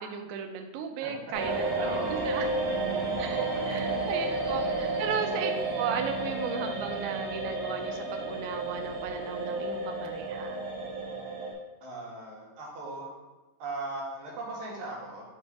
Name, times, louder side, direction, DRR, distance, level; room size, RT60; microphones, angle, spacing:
voice 1, 0.0-2.0 2.2-2.5 3.2-5.5 5.8-10.7, right 7 dB, 80° right, 4 dB, 2.2 m, -36 dB
sound 1, 1.3-11.5, right 2 dB, 45° right, 1.8 m, -31 dB
voice 2, 1.8-2.2 3.0-3.1 3.9-4.0 4.9-5.3 11.8-13.1 13.6-15.2, right 2 dB, 65° right, -4 dB, 2.7 m, -39 dB
7.3 x 3.2 x 4.6 m, 1.1 s
omnidirectional pair, 4.8 m